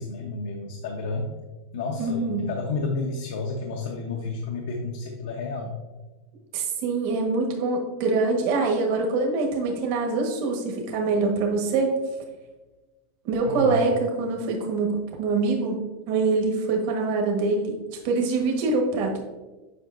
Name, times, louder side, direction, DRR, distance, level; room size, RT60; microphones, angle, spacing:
voice 1, 0.0-1.4 1.7-5.7 13.5-13.8, left 3 dB, 80° left, 1 dB, 0.8 m, -31 dB
voice 2, 2.0-2.5 6.5-11.9 13.2-14.9 15.2-15.8 16.1-17.8 18.0-19.2, right 3 dB, 55° right, 1 dB, 1.3 m, -24 dB
7.7 x 5.1 x 2.6 m, 1.2 s
supercardioid pair, 160°, 0 cm